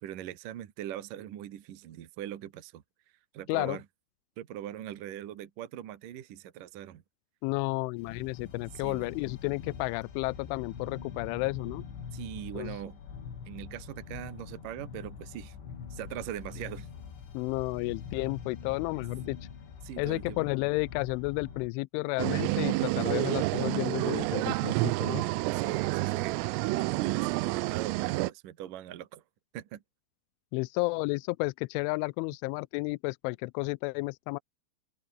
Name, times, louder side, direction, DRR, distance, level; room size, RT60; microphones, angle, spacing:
voice 1, 0.0-2.8 3.3-3.8 4.4-7.0 8.7-9.1 12.1-13.0 13.5-15.6 15.9-16.9 19.8-20.4 25.5-26.4 26.9-29.2 29.5-29.8, right 11 dB, 60° right, 2.5 m, -41 dB
voice 2, 7.4-11.8 12.6-12.8 17.3-19.4 20.0-25.2 30.5-34.4, left 25 dB, 85° left, 2.8 m, -32 dB
sound 1, 8.0-21.7, left 7 dB, 60° left, 6.9 m, -44 dB
sound 2, 22.2-28.3, right 20 dB, 90° right, 3.4 m, -29 dB
omnidirectional pair, 5.9 m